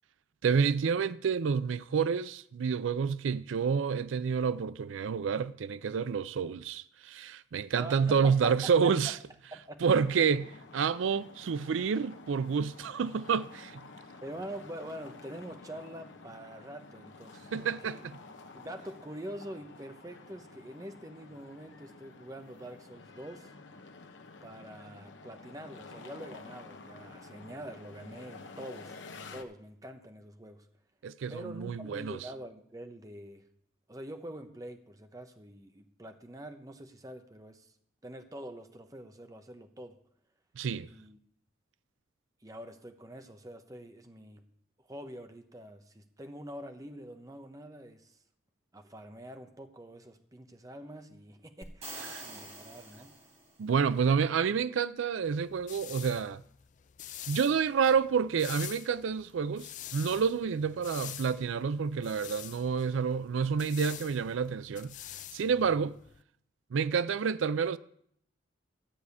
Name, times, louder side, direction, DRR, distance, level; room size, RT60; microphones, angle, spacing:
voice 1, 0.4-9.1 9.8-13.8 17.5-18.0 31.0-32.2 40.6-40.9 52.1-52.2 53.6-56.4 57.3-64.9 65.3-66.0 66.7-67.8, right 6 dB, 85° right, 0.4 m, -29 dB
voice 2, 7.7-9.1 9.5-9.8 14.2-18.1 18.5-23.5 24.4-29.0 29.3-30.7 31.3-33.5 33.9-37.7 38.0-40.0 40.9-41.2 42.4-44.4 44.8-48.2 48.7-53.1, right 1 dB, 20° right, 0.8 m, -45 dB
sound 1, 9.9-29.4, left 3 dB, 75° left, 0.9 m, -50 dB
sound 2, 51.6-53.7, right 2 dB, 35° right, 3.6 m, -45 dB
sound 3, 55.3-66.2, left 12 dB, 40° left, 0.4 m, -46 dB
12.5 x 4.9 x 8.4 m
head